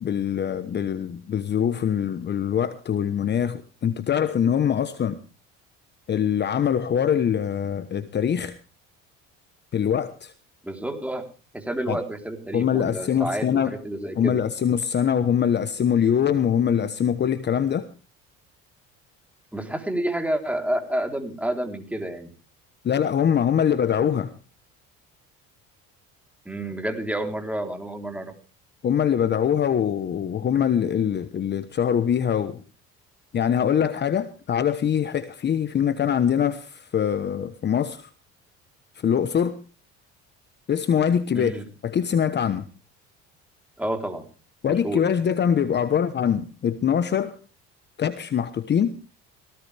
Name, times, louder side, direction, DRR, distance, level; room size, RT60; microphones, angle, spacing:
voice 1, 0.0-5.2 6.1-8.6 9.7-10.3 11.9-12.0 12.5-13.7 14.2-17.9 22.8-24.3 28.8-32.6 33.3-38.1 39.0-39.6 40.7-41.5 41.8-42.7 44.6-47.4 48.0-49.0, left 8 dB, 35° left, 1.1 m, -23 dB
voice 2, 10.6-11.3 11.5-14.4 19.5-22.3 26.5-28.3 41.3-41.6 43.8-44.3 44.8-45.0, right 1 dB, 5° right, 3.7 m, -29 dB
18.5 x 16.5 x 3.5 m
cardioid pair, 105°, 29 cm